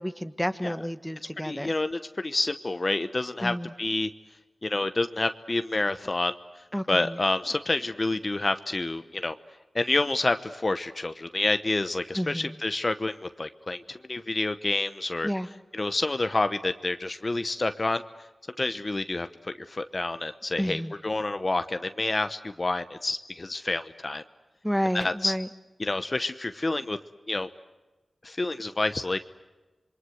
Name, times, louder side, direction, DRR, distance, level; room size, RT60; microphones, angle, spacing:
voice 1, 0.0-1.7 3.4-3.7 6.7-7.2 12.1-12.5 15.2-15.5 20.6-20.9 24.6-25.5, equal, 5° left, 10 dB, 1.4 m, -30 dB
voice 2, 1.4-4.1 4.6-9.4 9.7-15.3 15.7-18.0 18.6-24.2 24.9-25.4 25.8-27.0 27.3-27.5 28.2-29.2, left 2 dB, 40° left, 10 dB, 0.9 m, -28 dB
27.5 x 23.0 x 8.1 m, 1.2 s
cardioid pair, 55°, 0 cm